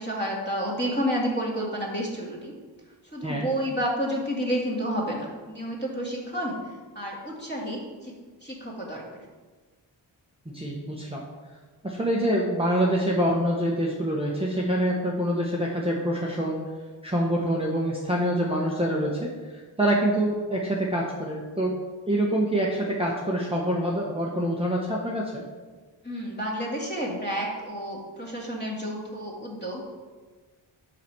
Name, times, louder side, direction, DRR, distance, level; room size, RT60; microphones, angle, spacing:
voice 1, 0.0-2.5 3.1-6.6 6.9-8.1 8.4-9.2 26.0-29.9, equal, 20° left, -4 dB, 2.5 m, -30 dB
voice 2, 10.4-11.2 11.8-16.6 17.0-21.8 22.1-25.4, right 1 dB, 10° right, -3 dB, 1.2 m, -26 dB
5.8 x 5.1 x 6.2 m, 1.4 s
cardioid pair, 45°, 49 cm